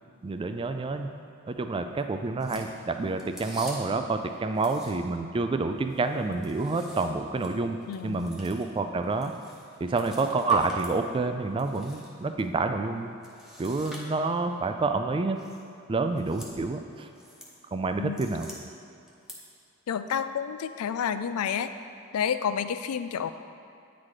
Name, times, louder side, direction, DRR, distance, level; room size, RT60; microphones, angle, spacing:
voice 1, 0.2-1.1 1.5-7.8 8.0-9.3 9.8-13.1 13.6-15.4 15.9-17.1 17.7-18.5, right 3 dB, 25° right, 7 dB, 0.3 m, -28 dB
sound 1, 2.4-4.0 4.5-5.3 5.6-11.0 11.3-12.5 13.2-14.5 15.4-15.7 16.1-16.6 16.9-17.5 17.9-18.6 19.1-19.3, equal, ahead, 0.9 m, -47 dB
voice 2, 7.9-8.4 18.0-18.3 19.9-21.7 22.1-23.3, left 7 dB, 75° left, 11 dB, 0.3 m, -30 dB
8.7 x 4.1 x 4.8 m, 2.6 s
head